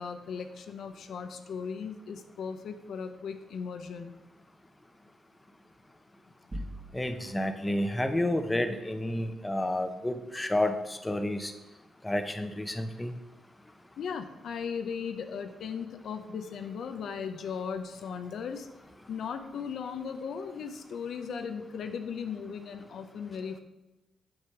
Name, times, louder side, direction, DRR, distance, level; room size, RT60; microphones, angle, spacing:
voice 1, 0.0-4.1 14.0-18.7 19.1-23.6, left 6 dB, 70° left, 7 dB, 0.7 m, -37 dB
sound 1, 6.5-7.5, equal, 35° right, 2.0 m, -40 dB
voice 2, 6.9-11.5 12.0-13.1, left 1 dB, 15° left, 8 dB, 0.9 m, -30 dB
8.0 x 5.1 x 5.9 m, 0.98 s
cardioid pair, 75°, 0 cm